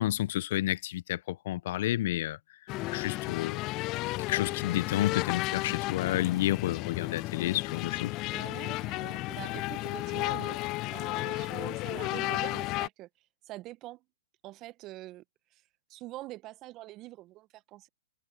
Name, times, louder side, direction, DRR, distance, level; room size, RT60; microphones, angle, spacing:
voice 1, 0.0-2.4 2.9-3.6 4.3-8.2, left 14 dB, 55° left, 1.0 m, -30 dB
sound 1, 2.7-12.9, left 20 dB, 35° left, 0.3 m, -33 dB
voice 2, 8.3-10.6 10.9-13.1 13.5-14.0 14.4-15.2 15.5-15.6 15.9-17.9, right 17 dB, 35° right, 1.4 m, -44 dB
hypercardioid pair, 115°, 0 cm